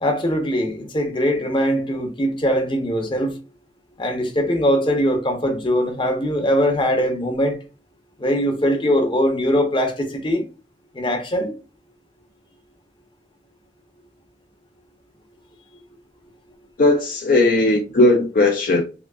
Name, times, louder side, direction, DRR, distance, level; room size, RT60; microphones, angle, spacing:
voice 1, 0.0-3.3 4.0-7.6 8.2-10.5 10.9-11.5, equal, 30° left, 0.8 m, -21 dB
voice 2, 16.8-18.8, left 2 dB, 50° left, 0.5 m, -17 dB
5.6 x 2.1 x 2.4 m
head